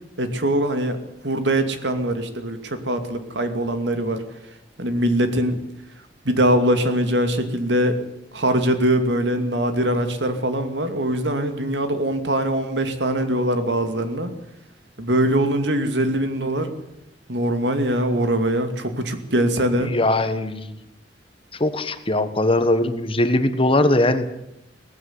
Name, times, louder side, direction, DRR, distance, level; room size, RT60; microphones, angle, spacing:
voice 1, 0.2-1.0 1.2-4.2 4.8-5.6 6.2-8.0 8.3-14.3 15.0-16.7 17.3-19.9, right 1 dB, 70° right, 8 dB, 2.5 m, -22 dB
voice 2, 19.8-20.7 21.5-24.3, left 1 dB, 30° left, 10 dB, 1.4 m, -20 dB
18.5 x 15.0 x 9.7 m, 0.84 s
head